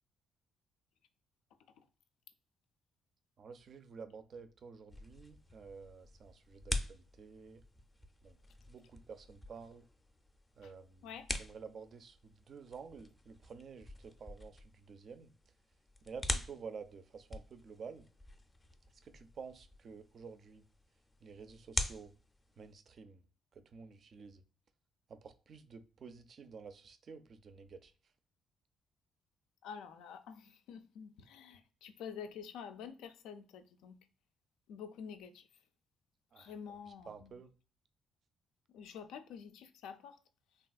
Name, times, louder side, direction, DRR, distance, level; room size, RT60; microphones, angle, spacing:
voice 1, 3.4-7.6 8.2-8.4 8.7-9.9 10.6-11.1 11.4-15.3 16.1-18.1 19.0-20.6 21.2-22.1 22.6-23.2 23.5-24.4 25.1-27.9 36.3-36.5 36.9-37.5, right 5 dB, 50° right, 0.4 m, -51 dB
sound 1, 4.9-22.7, left 2 dB, 20° left, 0.4 m, -45 dB
voice 2, 29.6-34.0 34.7-35.5 36.4-37.4 38.7-40.2, left 7 dB, 90° left, 0.3 m, -48 dB
3.3 x 2.3 x 2.3 m
cardioid pair, 90°, 0 cm